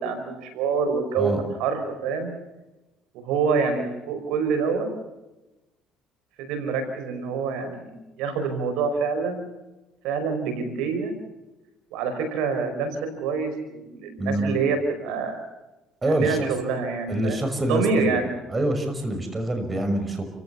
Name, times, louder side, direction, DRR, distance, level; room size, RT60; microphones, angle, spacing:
voice 1, 0.0-2.3 3.1-4.9 6.4-9.4 10.0-11.1 11.9-15.4 16.1-17.4 17.7-18.3, right 5 dB, 80° right, 7 dB, 5.3 m, -26 dB
voice 2, 14.2-14.6 16.0-16.5 17.1-18.2 18.5-20.3, right 1 dB, 20° right, 6 dB, 6.0 m, -25 dB
30.0 x 16.5 x 7.1 m, 1.0 s
cardioid pair, 100°, 0 cm